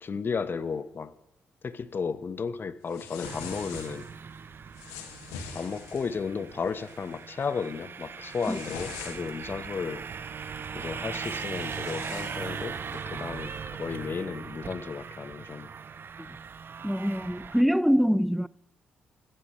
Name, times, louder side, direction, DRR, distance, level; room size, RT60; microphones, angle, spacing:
voice 1, 0.0-1.1 1.6-4.1 5.5-10.1 10.7-13.5 13.8-15.7, left 5 dB, 50° left, 1.3 m, -34 dB
sound 1, 2.9-4.1 4.7-6.1 6.6-7.0 7.4-7.7 8.1-9.5 10.6-10.7 11.1-13.1, left 7 dB, 85° left, 2.2 m, -43 dB
sound 2, 3.2-17.6, right 6 dB, 50° right, 0.9 m, -39 dB
voice 2, 16.8-18.5, equal, ahead, 0.6 m, -24 dB
29.0 x 15.0 x 3.3 m
hypercardioid pair, 40°, 5 cm